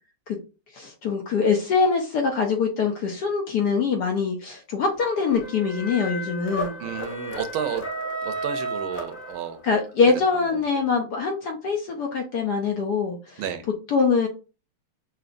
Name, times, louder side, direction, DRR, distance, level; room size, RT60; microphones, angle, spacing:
voice 1, 0.7-6.8 9.6-13.4 13.9-14.3, left 5 dB, 65° left, 2 dB, 1.0 m, -23 dB
sound 1, 5.0-9.8, right 1 dB, 35° left, 0.9 m, -33 dB
voice 2, 6.8-7.8 8.2-9.6 13.4-13.6, right 8 dB, 80° right, 10 dB, 1.3 m, -31 dB
5.7 x 2.6 x 2.5 m, 0.33 s
omnidirectional pair, 2.3 m